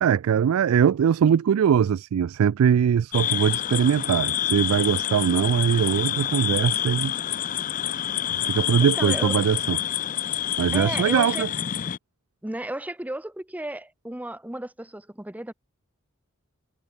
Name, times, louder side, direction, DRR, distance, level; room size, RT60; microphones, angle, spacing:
voice 1, 0.0-7.1 8.3-9.8 10.6-11.5, right 8 dB, 80° right, 0.3 m, -21 dB
sound 1, 3.1-12.0, left 11 dB, 40° left, 0.4 m, -27 dB
voice 2, 8.8-9.3 10.7-11.4 12.4-15.5, right 1 dB, 5° right, 0.7 m, -34 dB
head